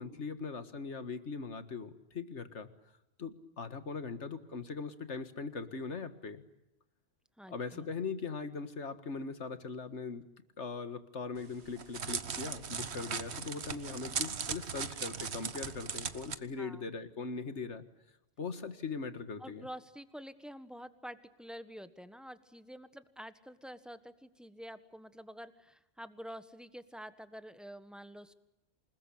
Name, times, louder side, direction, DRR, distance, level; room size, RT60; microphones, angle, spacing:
voice 1, 0.0-2.7 3.2-6.5 7.5-10.3 10.6-17.8 18.4-19.7, left 4 dB, 80° left, 11 dB, 2.1 m, -40 dB
voice 2, 7.4-7.9 16.6-16.8 19.4-28.3, equal, ahead, 11 dB, 1.4 m, -48 dB
Crackle, 11.4-16.4, right 6 dB, 65° right, 1.4 m, -38 dB
28.0 x 20.0 x 8.5 m, 0.88 s
omnidirectional pair, 1.2 m